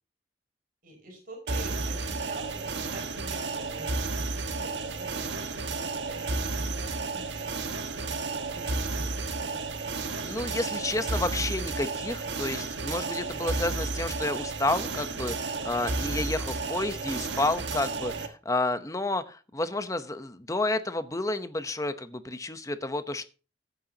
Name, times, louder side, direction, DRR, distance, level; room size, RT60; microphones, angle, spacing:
voice 1, 0.8-9.8, right 2 dB, 50° right, 1 dB, 5.3 m, -47 dB
sound 1, 1.5-18.3, right 3 dB, 75° right, 1.5 m, -32 dB
voice 2, 10.2-23.3, left 2 dB, 20° left, 11 dB, 0.9 m, -30 dB
15.0 x 9.2 x 2.8 m, 0.35 s
head